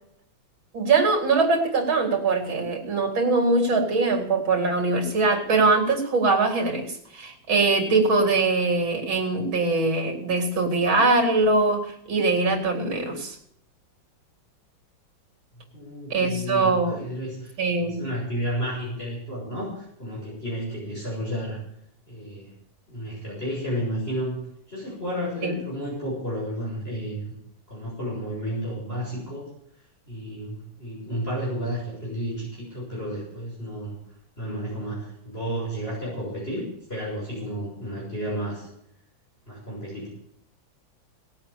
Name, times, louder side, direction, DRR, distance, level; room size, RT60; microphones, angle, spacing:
voice 1, 0.7-13.4 16.1-17.0 17.6-18.0 25.4-25.5, right 3 dB, 80° right, 3 dB, 4.0 m, -22 dB
voice 2, 15.6-21.6 22.1-22.5 22.9-24.4 24.7-27.3 27.7-29.5 30.1-34.0 34.4-38.7 39.5-40.1, equal, 30° left, -6 dB, 6.7 m, -32 dB
18.5 x 8.8 x 7.1 m, 0.72 s
omnidirectional pair, 2.1 m